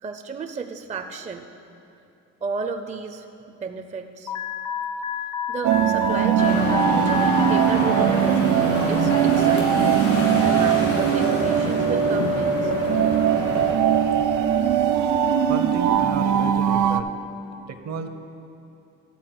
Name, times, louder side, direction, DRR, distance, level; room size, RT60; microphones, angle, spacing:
voice 1, 0.0-1.5 2.4-4.3 5.5-12.7, right 5 dB, 25° right, 5 dB, 0.5 m, -33 dB
Alarm, 4.3-7.8, left 8 dB, 60° left, 0.7 m, -30 dB
sound 1, 5.6-17.0, right 8 dB, 90° right, 0.5 m, -20 dB
sound 2, 6.4-13.7, left 2 dB, 85° left, 2.2 m, -28 dB
voice 2, 15.5-17.1 17.7-18.1, right 5 dB, 60° right, 8 dB, 0.8 m, -32 dB
11.5 x 4.3 x 7.8 m, 2.7 s
cardioid pair, 90°, 30 cm